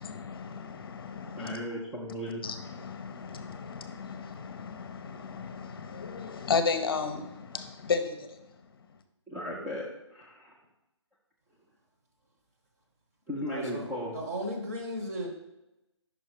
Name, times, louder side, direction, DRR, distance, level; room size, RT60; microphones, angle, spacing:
voice 1, 0.0-1.6 2.4-8.4, left 5 dB, 50° left, 0.7 m, -34 dB
voice 2, 1.4-2.4 9.3-10.5 13.3-14.2, equal, ahead, 0.3 m, -36 dB
voice 3, 13.5-13.8 14.1-15.3, equal, 30° right, 1.1 m, -35 dB
5.5 x 4.8 x 4.4 m
hypercardioid pair, 160°, 15 cm